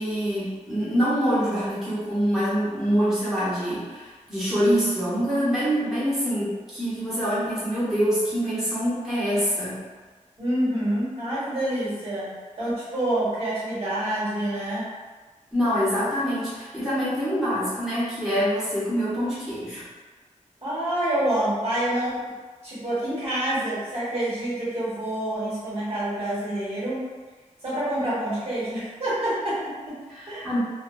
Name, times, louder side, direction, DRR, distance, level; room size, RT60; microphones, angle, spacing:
voice 1, 0.0-9.8 15.5-19.8 30.1-30.6, equal, ahead, -13 dB, 1.1 m, -25 dB
voice 2, 10.4-14.9 20.6-22.4 22.6-27.0 27.6-30.0 30.3-30.4, right 1 dB, 55° right, -10 dB, 1.4 m, -27 dB
2.6 x 2.2 x 2.6 m, 1.4 s
wide cardioid pair, 120°, 13 cm